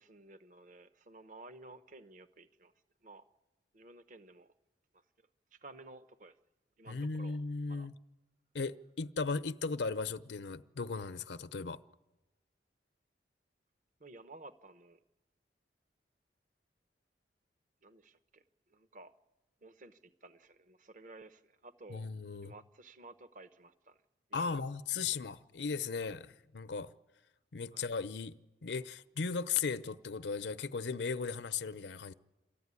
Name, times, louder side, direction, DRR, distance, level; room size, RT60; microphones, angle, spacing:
voice 1, 0.0-2.7 3.0-3.2 3.7-4.5 4.9-5.0 5.5-6.4 6.8-7.4 7.7-7.9 14.0-15.0 17.8-19.1 19.6-22.1 22.4-24.0 24.3-24.7 27.7-27.9, right 2 dB, 45° right, 0.9 m, -54 dB
voice 2, 6.9-7.9 8.5-11.8 21.9-22.5 24.3-26.9 27.5-32.1, left 5 dB, 75° left, 0.7 m, -37 dB
27.5 x 13.5 x 9.7 m
head